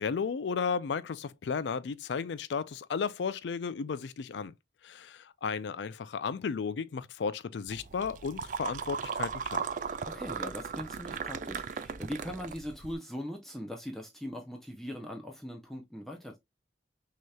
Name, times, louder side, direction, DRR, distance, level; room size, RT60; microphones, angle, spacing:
voice 1, 0.0-4.5 4.8-9.7, left 5 dB, 85° left, 0.4 m, -34 dB
sound 1, 7.7-12.9, right 6 dB, 45° right, 0.3 m, -37 dB
voice 2, 9.8-16.4, equal, ahead, 0.5 m, -40 dB
6.2 x 2.9 x 2.3 m
head